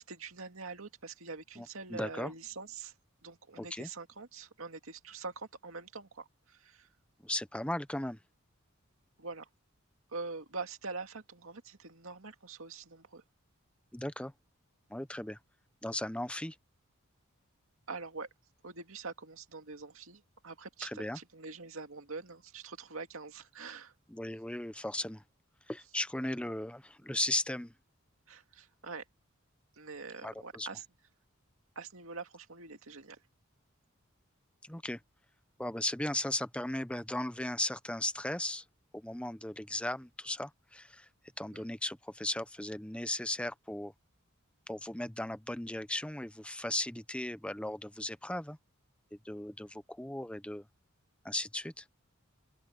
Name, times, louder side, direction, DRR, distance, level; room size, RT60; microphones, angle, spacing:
voice 1, 0.0-2.9 3.2-6.9 9.2-9.5 10.1-13.2 17.9-18.3 18.6-23.9 28.3-29.0 29.8-30.8 31.8-33.2 41.5-41.6, right 4 dB, 75° right, 2.2 m, -44 dB
voice 2, 1.6-2.3 3.6-3.9 7.2-8.2 13.9-14.3 14.9-15.4 15.8-16.6 20.8-21.2 24.1-25.2 25.7-27.7 30.2-30.7 34.6-35.0 35.6-38.6 38.9-41.1 41.4-43.9 44.7-48.6 49.1-50.7 51.2-51.8, left 1 dB, 5° left, 0.7 m, -36 dB
open air
head